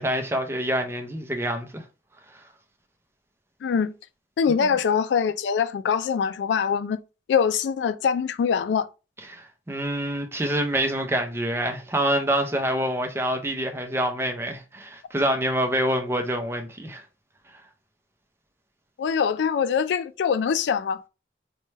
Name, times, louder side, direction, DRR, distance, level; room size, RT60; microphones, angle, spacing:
voice 1, 0.0-1.8 4.6-4.7 9.3-17.0, right 1 dB, 15° right, 0.5 m, -26 dB
voice 2, 3.6-3.9 4.4-7.0 7.3-8.9 19.0-21.1, left 6 dB, 80° left, 0.3 m, -23 dB
4.2 x 2.2 x 3.2 m
head